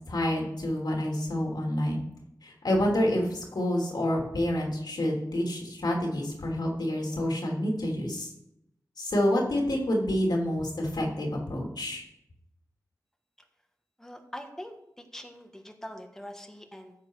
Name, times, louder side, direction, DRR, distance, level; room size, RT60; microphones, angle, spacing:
voice 1, 0.1-2.0 2.4-8.3 9.0-12.0, left 1 dB, 85° left, -1 dB, 3.1 m, -28 dB
voice 2, 14.0-14.7 15.1-16.9, equal, 5° left, 4 dB, 1.4 m, -43 dB
14.5 x 7.4 x 4.8 m, 0.80 s
wide cardioid pair, 80°, 7 cm